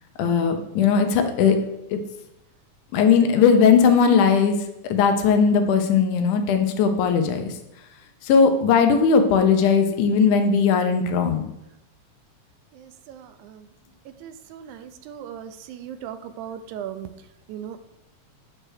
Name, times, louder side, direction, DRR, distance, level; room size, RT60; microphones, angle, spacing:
voice 1, 0.2-1.6 1.9-2.0 2.9-4.6 4.8-7.5 8.2-11.4, left 6 dB, 85° left, 6 dB, 2.3 m, -18 dB
voice 2, 15.1-15.4 15.9-17.1 17.5-17.8, right 9 dB, 80° right, 10 dB, 1.9 m, -35 dB
8.8 x 3.3 x 6.3 m, 0.87 s
omnidirectional pair, 3.5 m